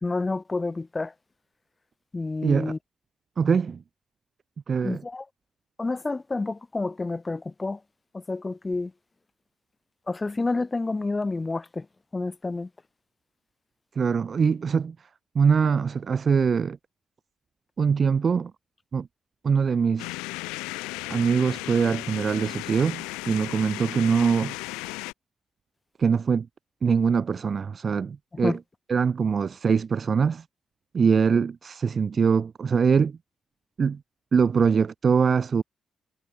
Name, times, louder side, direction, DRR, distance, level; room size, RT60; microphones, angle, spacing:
voice 1, 0.0-1.1 2.1-2.8 4.8-5.2 5.8-7.8 8.1-8.9 10.1-11.9 12.1-12.7 28.4-28.6, left 3 dB, 30° left, 2.0 m, -29 dB
voice 2, 2.4-2.7 3.4-3.8 4.7-5.0 14.0-14.9 15.3-16.8 17.8-18.5 18.9-19.1 19.4-20.1 21.1-24.5 26.0-26.5 26.8-28.6 28.9-30.4 30.9-33.2 33.8-34.0 34.3-35.6, right 6 dB, 55° right, 2.9 m, -23 dB
sound 1, 20.0-25.1, left 24 dB, 85° left, 7.7 m, -35 dB
hypercardioid pair, 40°, 0 cm